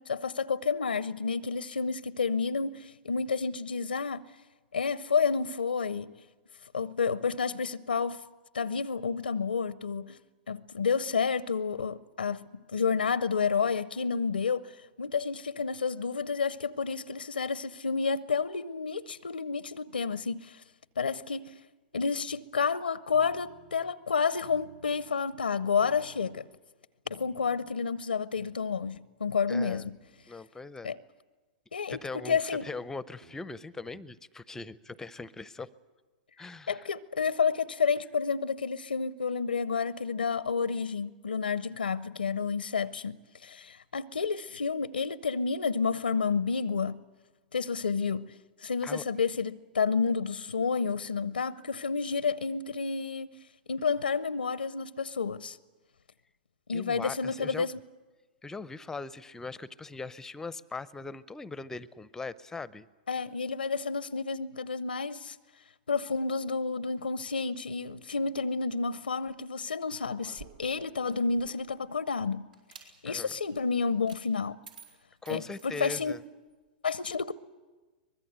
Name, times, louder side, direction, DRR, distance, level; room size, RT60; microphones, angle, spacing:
voice 1, 0.0-4.2 4.7-6.2 6.7-8.2 8.5-10.2 10.5-14.7 15.0-20.6 21.0-21.5 21.9-26.5 27.1-29.9 30.8-31.0 31.7-32.6 36.7-47.0 47.5-53.3 53.7-55.6 56.7-57.7 63.1-65.4 65.9-72.5 73.0-74.6 75.3-76.2 76.8-77.3, left 5 dB, 90° left, 0.6 m, -30 dB
sound 1, 23.1-23.8 24.4-25.2 25.7-26.4 27.1-27.7 28.4-29.0 29.7-30.4 31.9-32.1 32.6-32.8 33.2-33.4 33.8-34.1 34.5-34.8, right 4 dB, 55° right, 2.4 m, -58 dB
voice 2, 29.5-29.9 30.3-30.9 31.9-35.7 36.4-36.9 48.8-49.0 56.7-57.7 58.4-62.9 73.1-73.3 75.2-76.2, left 3 dB, 10° left, 0.7 m, -40 dB
sound 2, 70.2-71.7 72.5-72.9 73.3-73.4 74.1-74.2 74.6-76.2, right 6 dB, 70° right, 4.8 m, -52 dB
23.5 x 21.0 x 8.1 m
hypercardioid pair, 115°, 5 cm